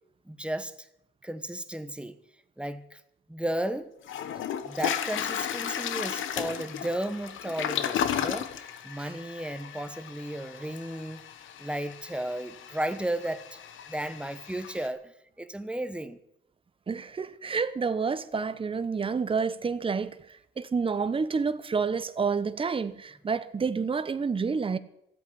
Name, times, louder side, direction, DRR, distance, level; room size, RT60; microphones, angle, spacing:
voice 1, 0.2-0.9 1.2-2.2 2.6-3.0 3.3-3.9 4.6-11.2 11.6-13.6 13.9-16.2, right 1 dB, 5° right, 1.1 m, -34 dB
Toilet flush, 3.5-3.6 4.1-14.9, left 9 dB, 80° left, 1.3 m, -34 dB
voice 2, 16.9-20.2 20.6-24.8, right 5 dB, 25° right, 0.9 m, -29 dB
13.5 x 8.4 x 9.9 m
cardioid pair, 90°, 20 cm